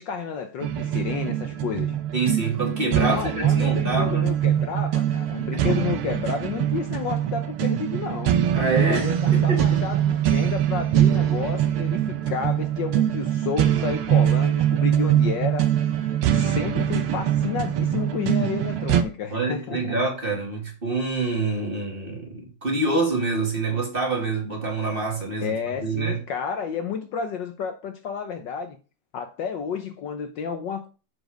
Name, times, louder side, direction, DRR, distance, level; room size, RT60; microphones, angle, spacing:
voice 1, 0.0-2.0 3.0-8.4 8.9-15.7 16.3-20.0 25.4-28.8 29.1-30.9, left 6 dB, 65° left, 1.3 m, -31 dB
sound 1, 0.6-19.0, right 11 dB, 85° right, 1.8 m, -23 dB
voice 2, 2.1-4.3 5.5-5.8 8.5-9.8 19.3-25.5 25.8-26.2, right 3 dB, 25° right, 2.4 m, -26 dB
8.0 x 5.0 x 5.0 m
omnidirectional pair, 2.3 m